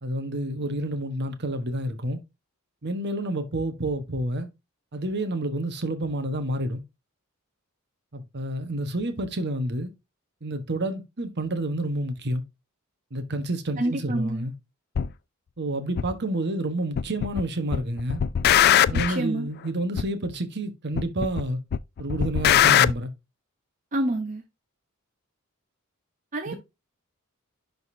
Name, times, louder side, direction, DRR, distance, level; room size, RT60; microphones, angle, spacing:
voice 1, 0.0-2.2 2.8-4.5 4.9-6.8 8.1-9.9 10.4-12.4 13.1-14.5 15.6-18.2 18.9-21.6 22.0-23.1 26.5-26.6, right 1 dB, 50° right, 1.2 m, -29 dB
voice 2, 13.8-14.4 18.9-19.5 23.9-24.4 26.3-26.5, right 1 dB, 35° right, 0.9 m, -28 dB
sound 1, 14.9-15.1 16.0-16.1 17.0-17.4 17.7-19.2 20.0-20.1 21.0-21.4 21.7-22.9, left 10 dB, 50° left, 0.3 m, -20 dB
11.0 x 4.0 x 2.7 m
head